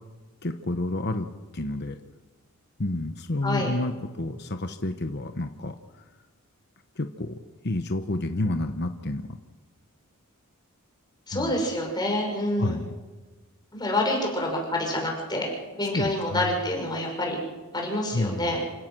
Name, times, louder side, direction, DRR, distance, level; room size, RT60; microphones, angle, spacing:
voice 1, 0.4-1.3 1.5-2.0 2.8-5.7 7.0-7.4 7.6-9.4 11.3-11.5 12.6-12.9 15.9-16.5 18.1-18.6, left 2 dB, 50° left, 6 dB, 1.1 m, -29 dB
voice 2, 11.3-12.8 13.7-17.4 17.7-18.6, left 1 dB, 20° left, 0 dB, 5.9 m, -27 dB
28.0 x 16.5 x 6.2 m, 1.3 s
head